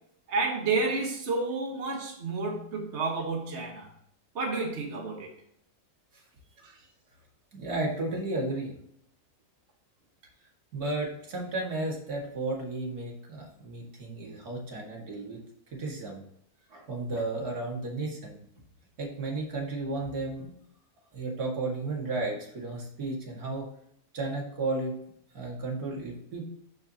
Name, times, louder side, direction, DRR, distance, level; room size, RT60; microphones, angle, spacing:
voice 1, 0.3-3.9 4.3-5.3 6.6-6.8, right 3 dB, 50° right, 1 dB, 1.7 m, -30 dB
voice 2, 7.5-8.8 10.7-15.4 15.7-16.2 16.7-18.4 19.0-20.6 21.1-23.7 24.1-25.0 25.3-26.5, right 2 dB, 90° right, -2 dB, 2.5 m, -33 dB
12.5 x 4.7 x 2.9 m, 0.72 s
omnidirectional pair, 1.6 m